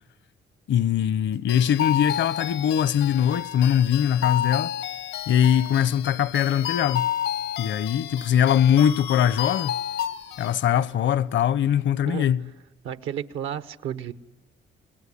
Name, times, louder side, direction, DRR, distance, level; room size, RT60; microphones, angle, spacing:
voice 1, 0.7-4.7 5.3-7.1 7.6-9.7 10.4-12.5, left 9 dB, 70° left, 0.9 m, -22 dB
sound 1, 1.5-10.6, left 11 dB, 90° left, 1.4 m, -31 dB
voice 2, 12.8-14.1, right 9 dB, 85° right, 1.2 m, -32 dB
26.0 x 20.5 x 9.8 m
cardioid pair, 90°, 20 cm